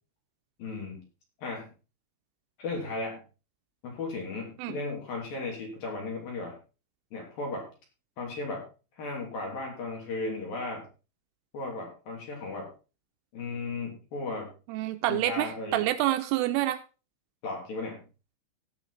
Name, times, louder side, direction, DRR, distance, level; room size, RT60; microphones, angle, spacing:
voice 1, 0.6-1.0 1.4-1.7 2.6-3.2 3.8-6.6 7.1-7.7 8.2-8.7 9.0-10.9 11.5-12.7 13.3-14.5 15.1-15.9 17.4-18.1, left 3 dB, 50° left, 0 dB, 4.6 m, -35 dB
voice 2, 14.7-16.8, right 14 dB, 80° right, 9 dB, 3.2 m, -27 dB
17.5 x 6.0 x 4.2 m, 0.33 s
omnidirectional pair, 5.8 m